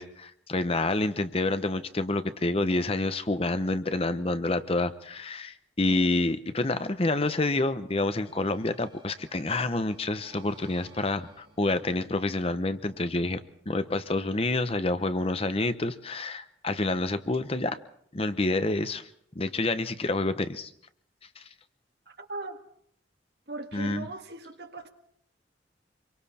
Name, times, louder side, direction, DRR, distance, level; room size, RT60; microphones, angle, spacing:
voice 1, 0.0-13.4 13.7-17.8 18.1-19.1 19.3-20.7 21.4-21.5 23.7-24.1, left 2 dB, 30° left, 11 dB, 0.9 m, -28 dB
sound 1, 8.2-13.5, right 2 dB, 25° right, 7.7 m, -56 dB
voice 2, 22.1-22.6 23.5-24.9, right 2 dB, 60° right, 5 dB, 2.0 m, -39 dB
26.0 x 23.5 x 4.3 m, 0.66 s
head